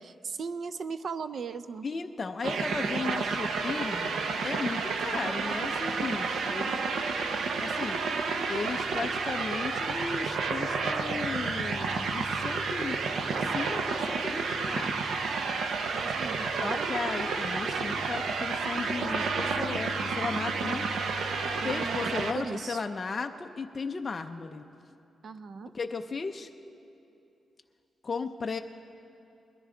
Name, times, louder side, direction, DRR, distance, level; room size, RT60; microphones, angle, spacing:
voice 1, 0.0-1.9 15.9-16.9 21.6-22.8 25.2-25.7, right 5 dB, 45° right, 12 dB, 0.4 m, -37 dB
voice 2, 1.8-6.8 7.6-8.0 8.5-13.0 13.4-15.1 16.6-20.9 21.6-24.7 25.7-26.5 28.0-28.6, left 4 dB, 30° left, 5 dB, 0.4 m, -35 dB
sound 1, 2.4-22.3, right 4 dB, 75° right, 0.8 m, -30 dB
21.0 x 13.5 x 3.8 m, 2.8 s
wide cardioid pair, 175°, 0 cm